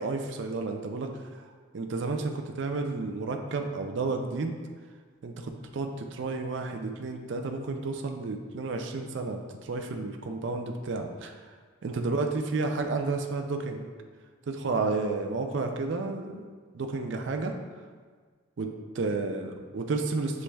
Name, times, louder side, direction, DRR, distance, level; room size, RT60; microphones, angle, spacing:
voice 1, 0.0-1.5 1.7-4.5 5.2-11.5 11.8-13.9 14.5-16.5 16.7-17.5 18.6-20.4, right 3 dB, 65° right, 4 dB, 0.4 m, -31 dB
7.5 x 3.1 x 2.2 m, 1.5 s
head